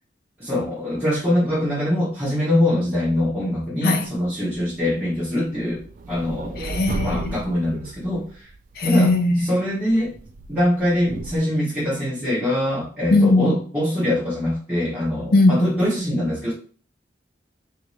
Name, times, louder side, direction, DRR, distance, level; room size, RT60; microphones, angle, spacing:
voice 1, 0.4-5.8 6.1-6.6 7.0-8.5 8.8-9.1 9.5-10.1 10.5-16.5, left 1 dB, 10° right, 1.2 m, -23 dB
sound 1, 3.9-4.8 5.1-9.2 9.9-11.4, right 3 dB, 45° right, 0.3 m, -34 dB
voice 2, 6.6-7.4 8.8-9.5 13.1-13.6 15.3-15.7, left 2 dB, 60° left, 0.5 m, -18 dB
3.5 x 2.9 x 3.0 m
head